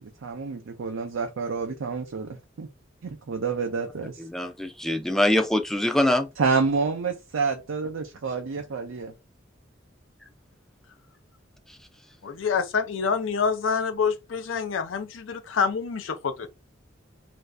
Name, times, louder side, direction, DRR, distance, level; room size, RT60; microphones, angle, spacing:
voice 1, 0.0-2.7 3.0-4.2 6.4-9.1, right 4 dB, 85° right, 0.5 m, -28 dB
voice 2, 4.2-6.3, left 1 dB, ahead, 0.3 m, -23 dB
voice 3, 12.2-16.5, left 5 dB, 80° left, 0.5 m, -27 dB
2.5 x 2.4 x 3.3 m
head